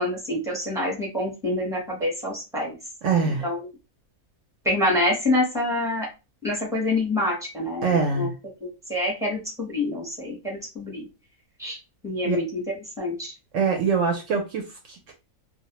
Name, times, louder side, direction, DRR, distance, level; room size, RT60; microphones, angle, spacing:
voice 1, 0.0-2.7 3.4-3.6 4.6-6.1 6.4-8.3 8.6-11.1 11.6-11.8 12.0-12.6 13.0-13.3, left 1 dB, 5° right, -2 dB, 0.8 m, -26 dB
voice 2, 3.0-3.5 7.8-8.4 12.2-12.4 13.5-15.1, right 5 dB, 65° right, 2 dB, 0.8 m, -24 dB
2.4 x 2.0 x 2.9 m, 0.28 s
omnidirectional pair, 1.6 m